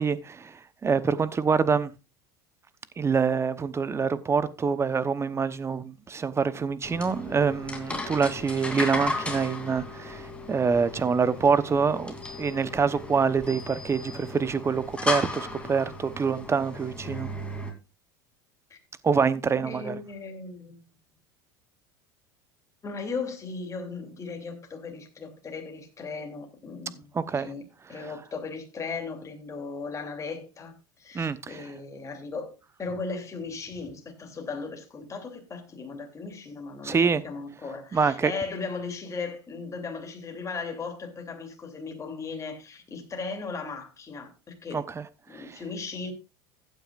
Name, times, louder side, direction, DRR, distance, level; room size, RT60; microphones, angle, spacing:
voice 1, 0.0-1.9 3.0-17.3 19.0-20.0 27.1-27.5 28.0-28.1 31.1-31.6 36.8-37.2 37.9-38.3 44.7-45.0 45.3-45.6, right 5 dB, 20° right, 0.9 m, -26 dB
sound 1, 6.8-17.7, left 2 dB, 10° left, 2.9 m, -35 dB
voice 2, 19.6-20.9 22.8-27.1 27.3-27.6 27.9-32.5 32.8-44.8 45.3-46.1, left 4 dB, 25° left, 2.9 m, -37 dB
15.5 x 9.1 x 2.5 m
supercardioid pair, 100°, 12 cm